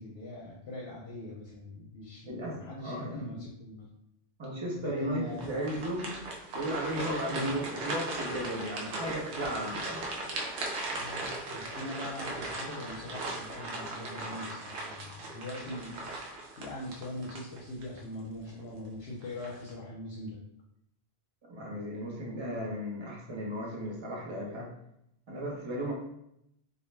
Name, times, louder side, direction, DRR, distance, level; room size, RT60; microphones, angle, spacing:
voice 1, 0.0-3.9 4.8-5.8 7.3-7.5 10.9-16.0 16.6-20.4, left 1 dB, 70° left, -3 dB, 0.8 m, -41 dB
voice 2, 2.3-2.6 2.8-3.3 4.4-6.1 6.5-10.0 21.5-24.7 25.3-25.9, equal, 35° right, -2 dB, 0.5 m, -35 dB
sound 1, 5.3-18.0 18.5-18.6 19.2-19.7, right 2 dB, 80° right, 0.9 m, -38 dB
2.4 x 2.0 x 3.1 m, 0.78 s
omnidirectional pair, 1.1 m